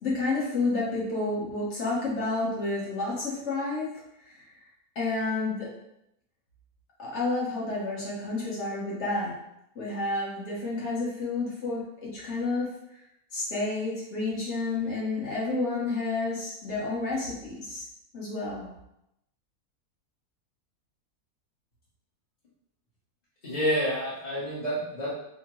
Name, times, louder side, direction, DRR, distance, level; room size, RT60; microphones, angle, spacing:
voice 1, 0.0-3.9 4.2-4.5 4.9-5.7 7.0-9.3 9.7-13.0 13.3-17.8 18.1-18.7, left 3 dB, 50° left, -5 dB, 1.5 m, -30 dB
voice 2, 23.4-25.1, equal, 35° left, -11 dB, 1.0 m, -28 dB
5.0 x 2.2 x 3.0 m, 0.83 s
omnidirectional pair, 1.6 m